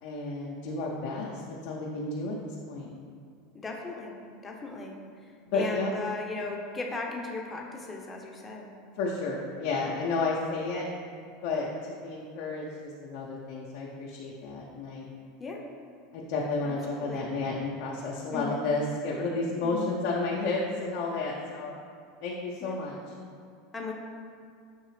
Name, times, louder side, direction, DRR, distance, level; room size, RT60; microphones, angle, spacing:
voice 1, 0.0-2.9 5.5-5.9 9.0-10.9 11.4-11.7 12.0-15.1 16.1-21.7 22.2-23.0, left 3 dB, 60° left, -3 dB, 0.5 m, -31 dB
voice 2, 3.5-4.1 4.4-8.7 15.4-15.7 16.6-17.3 18.3-18.6 19.6-19.9 22.6-22.7 23.7-23.9, left 3 dB, 20° left, 0 dB, 0.6 m, -37 dB
5.7 x 2.7 x 3.1 m, 2.3 s
hypercardioid pair, 90°, 0 cm